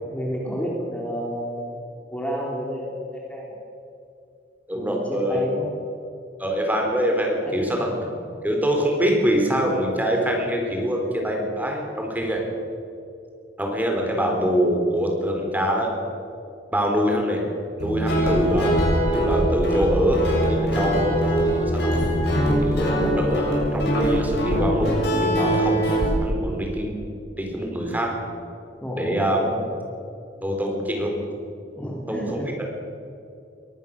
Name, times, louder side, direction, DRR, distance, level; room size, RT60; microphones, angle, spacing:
voice 1, 0.1-1.7 2.1-3.6 4.7-5.7 7.4-8.2 28.8-29.6 31.8-32.6, equal, 10° left, -3 dB, 3.4 m, -31 dB
voice 2, 4.7-5.4 6.4-7.8 8.4-12.4 13.6-15.9 16.7-17.4 17.8-18.7 19.1-20.2 20.5-21.9 22.6-24.9 25.2-25.9 26.2-26.9 27.4-28.1 29.0-29.4 30.4-31.1 32.1-32.5, equal, 10° right, 1 dB, 4.1 m, -24 dB
Guitar, 17.8-26.1, equal, 65° left, 7.3 m, -22 dB
23.0 x 18.5 x 6.7 m, 2.6 s
head